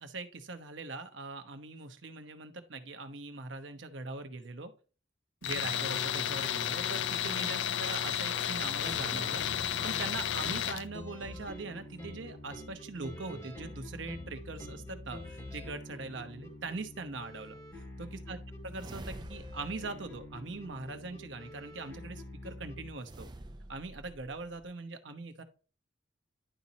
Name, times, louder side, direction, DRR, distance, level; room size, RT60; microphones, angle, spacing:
voice 1, 0.0-4.7 5.4-17.6 18.0-18.4 18.6-23.3 23.7-25.4, right 3 dB, 90° right, 8 dB, 1.0 m, -41 dB
Tools, 5.4-10.8, left 9 dB, 80° left, 0.4 m, -32 dB
sound 1, 8.5-22.9, left 1 dB, 15° left, 2.4 m, -46 dB
sound 2, 18.7-21.2 23.0-24.7, right 1 dB, 25° right, 0.6 m, -49 dB
11.0 x 4.1 x 2.8 m, 0.36 s
head